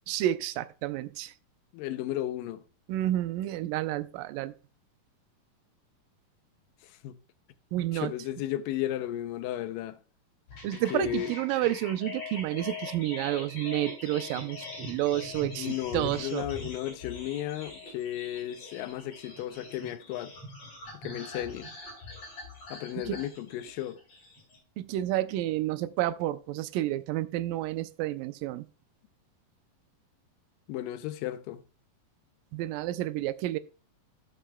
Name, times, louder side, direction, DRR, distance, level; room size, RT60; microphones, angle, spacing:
voice 1, 0.1-1.3 2.9-4.5 7.7-8.1 10.6-16.5 23.0-23.2 24.8-28.7 32.5-33.6, right 14 dB, 90° right, 2.3 m, -30 dB
voice 2, 1.7-2.6 7.0-7.2 7.8-10.0 10.7-11.3 15.6-20.3 21.0-21.7 22.7-24.0 30.7-31.6, left 12 dB, 85° left, 2.3 m, -34 dB
sound 1, 10.5-24.6, left 2 dB, 55° left, 3.8 m, -42 dB
17.5 x 6.8 x 2.2 m
omnidirectional pair, 3.9 m